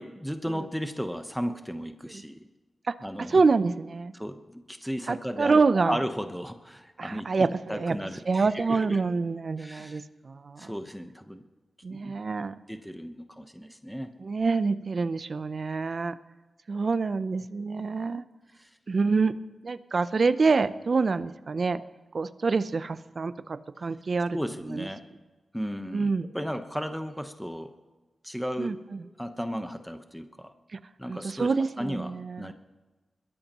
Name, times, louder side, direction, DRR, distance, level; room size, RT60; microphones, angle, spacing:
voice 1, 0.0-2.5 3.0-3.4 4.1-9.0 9.6-10.0 10.6-11.4 11.9-12.2 12.7-14.1 18.6-18.7 24.3-25.0 25.5-27.7 28.2-28.7 29.0-30.5 31.0-32.5, equal, ahead, 7 dB, 1.0 m, -35 dB
voice 2, 2.9-4.1 5.1-6.0 7.0-8.0 8.3-10.7 11.8-12.5 14.2-16.2 16.7-18.2 18.9-19.4 19.6-21.8 22.1-24.4 24.7-24.9 25.9-26.3 28.6-29.1 30.7-30.8 31.1-32.5, right 4 dB, 55° right, 13 dB, 0.6 m, -26 dB
22.0 x 13.0 x 3.0 m, 1.2 s
cardioid pair, 60°, 0 cm